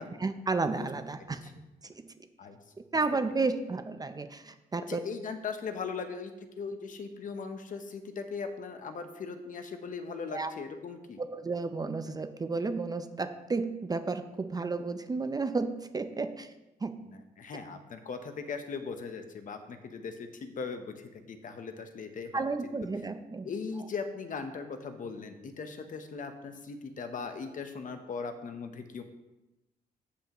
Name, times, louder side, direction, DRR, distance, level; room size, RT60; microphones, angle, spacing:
voice 1, 0.2-1.4 1.9-2.0 2.9-5.0 10.3-10.5 11.2-16.5 16.8-16.9 22.3-23.5, right 3 dB, 20° right, 8 dB, 0.5 m, -32 dB
voice 2, 1.2-1.5 2.4-2.6 4.9-11.2 17.0-22.5 23.4-29.0, left 5 dB, 50° left, 7 dB, 0.9 m, -39 dB
14.5 x 5.7 x 3.0 m, 1.0 s
cardioid pair, 120°, 18 cm